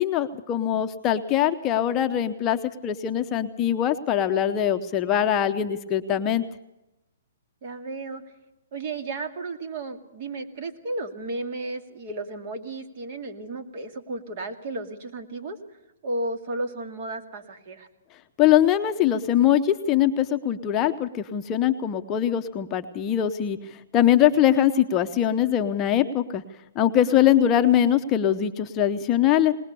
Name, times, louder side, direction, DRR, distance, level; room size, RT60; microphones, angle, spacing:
voice 1, 0.0-6.5 18.4-26.4 26.8-29.5, left 10 dB, 20° left, 7 dB, 0.8 m, -22 dB
voice 2, 7.6-8.2 8.7-15.6 16.0-17.9 26.9-27.3, right 2 dB, 45° right, 6 dB, 2.4 m, -33 dB
20.0 x 19.5 x 6.9 m, 0.94 s
hypercardioid pair, 155°, 0 cm